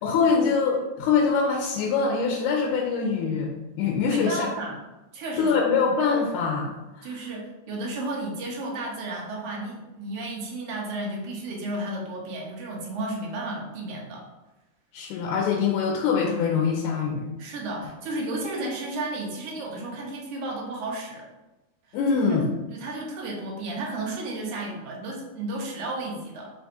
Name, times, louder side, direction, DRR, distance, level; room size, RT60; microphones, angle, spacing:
voice 1, 0.0-3.5 3.8-4.5 5.4-7.1 14.9-17.3 21.9-22.5, left 5 dB, 85° left, -1 dB, 2.1 m, -24 dB
voice 2, 4.1-4.8 5.1-5.6 7.0-14.2 17.4-21.3 21.9-22.0 22.3-22.4 22.7-26.5, right 2 dB, 65° right, -2 dB, 1.7 m, -33 dB
5.2 x 2.3 x 4.3 m, 1.0 s
omnidirectional pair, 3.5 m